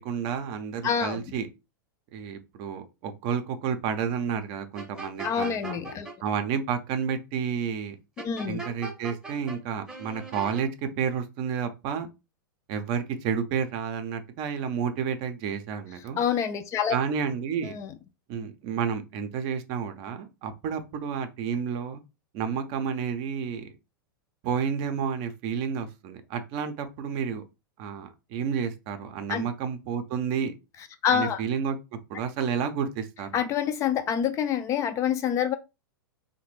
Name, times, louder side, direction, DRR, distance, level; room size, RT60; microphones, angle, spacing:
voice 1, 0.0-1.5 2.1-5.8 6.2-8.0 8.5-12.1 12.7-16.2 16.9-17.8 18.3-22.0 22.3-23.7 24.4-27.4 27.8-30.5 31.1-33.4, right 7 dB, 40° right, 0.6 m, -30 dB
voice 2, 0.8-1.2 5.2-6.1 8.2-8.6 16.2-17.0 17.6-17.9 29.3-29.5 31.0-31.4 33.3-35.5, left 8 dB, 25° left, 0.3 m, -26 dB
sound 1, 4.8-6.1 8.2-9.6 9.9-10.6, right 3 dB, 5° right, 0.8 m, -39 dB
3.1 x 2.1 x 3.1 m
figure-of-eight pair, 100°, 12 cm